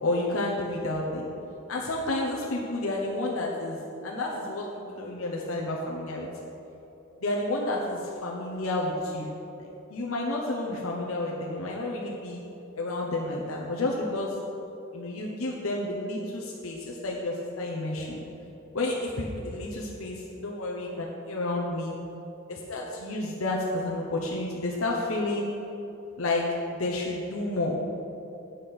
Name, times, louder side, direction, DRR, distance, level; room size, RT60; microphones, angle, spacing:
voice 1, 0.0-1.3 1.7-6.3 7.2-9.3 9.6-12.4 12.8-14.3 14.9-18.2 18.7-22.0 22.5-25.5 26.2-27.8, left 2 dB, 85° left, -2 dB, 0.9 m, -30 dB
8.3 x 5.9 x 6.9 m, 2.9 s
head